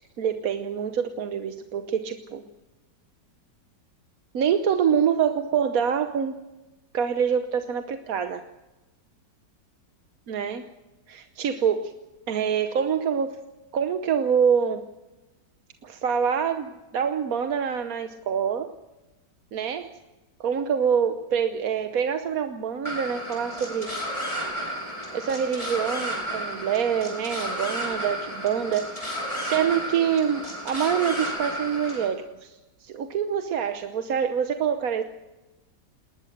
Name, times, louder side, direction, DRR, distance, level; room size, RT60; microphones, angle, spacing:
voice 1, 0.2-2.4 4.3-6.4 6.9-8.4 10.3-10.7 11.1-11.9 12.3-13.4 13.7-14.9 15.8-18.7 19.5-20.0 20.4-23.9 25.1-29.0 29.4-35.0, right 7 dB, 55° right, 8 dB, 1.3 m, -26 dB
sound 1, 22.9-32.1, equal, 20° left, 5.9 m, -32 dB
20.0 x 19.5 x 6.6 m, 1.1 s
omnidirectional pair, 1.9 m